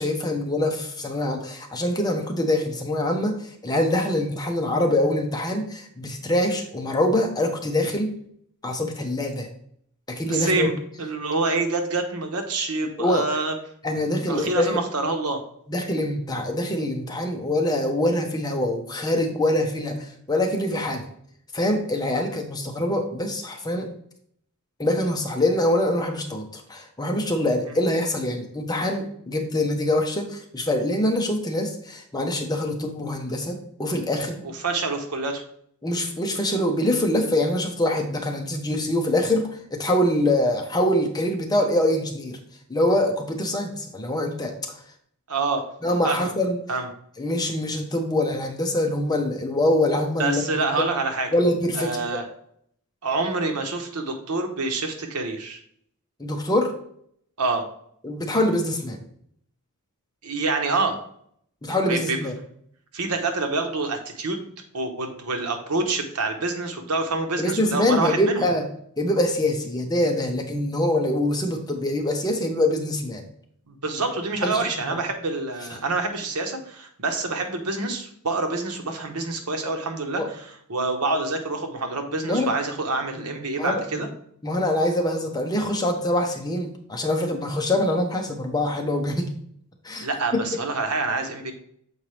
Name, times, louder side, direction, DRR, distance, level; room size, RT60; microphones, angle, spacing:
voice 1, 0.0-8.1 8.6-9.5 10.1-10.7 13.0-13.2 13.8-14.8 15.7-21.0 21.5-23.9 24.8-34.4 35.8-42.4 42.7-44.5 45.8-46.6 47.2-50.7 51.3-52.0 56.2-56.7 58.0-59.0 61.6-62.3 67.4-68.6 69.0-73.2 74.4-74.6 74.9-75.0 80.2-80.3 82.3-82.5 83.6-84.0 84.4-89.3 89.8-90.1 90.3-90.4, left 1 dB, 20° left, 3 dB, 0.8 m, -24 dB
voice 2, 10.3-13.5 14.3-15.4 34.4-35.4 45.3-45.7 46.0-46.3 46.7-46.9 50.2-51.3 51.7-52.3 53.0-55.6 57.4-57.7 60.2-61.0 61.7-62.2 62.9-64.4 64.7-68.5 73.7-84.1 90.0-91.5, right 3 dB, 90° right, 4 dB, 1.1 m, -27 dB
7.2 x 4.5 x 3.3 m, 0.67 s
head